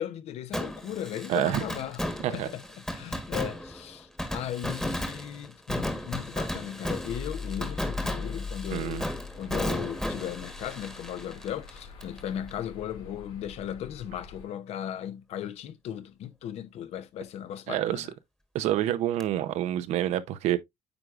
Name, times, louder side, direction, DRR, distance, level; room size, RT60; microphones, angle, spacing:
voice 1, 0.0-2.0 2.3-9.0 9.4-18.1, left 10 dB, 65° left, 0.8 m, -37 dB
Fireworks, 0.5-12.2 12.5-12.6 19.2-19.3, left 1 dB, 5° left, 1.3 m, -34 dB
voice 2, 1.3-1.6 2.2-2.5 8.7-9.1 17.7-18.1 18.5-20.6, right 12 dB, 70° right, 0.7 m, -27 dB
sound 1, 7.1-14.5, left 4 dB, 85° left, 4.0 m, -41 dB
8.9 x 4.7 x 2.4 m
cardioid pair, 130°, 12 cm